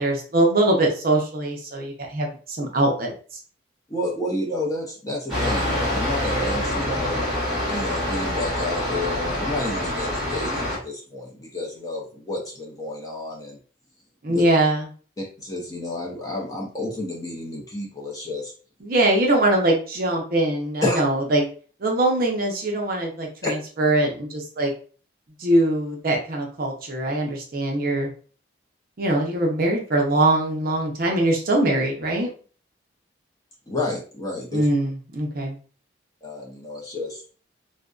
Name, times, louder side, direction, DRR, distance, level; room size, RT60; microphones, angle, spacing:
voice 1, 0.0-3.1 14.2-14.9 18.8-21.5 21.8-24.7 25.4-28.1 29.0-32.3 34.5-35.6, right 1 dB, 50° right, 1 dB, 0.6 m, -22 dB
voice 2, 3.9-7.2 7.7-13.6 14.3-14.4 15.2-18.5 20.8-21.0 23.4-23.5 33.7-34.7 36.2-37.2, left 2 dB, 20° left, -3 dB, 0.5 m, -30 dB
sound 1, 5.3-10.8, left 1 dB, 5° right, 0.9 m, -26 dB
2.5 x 2.1 x 2.3 m, 0.40 s
head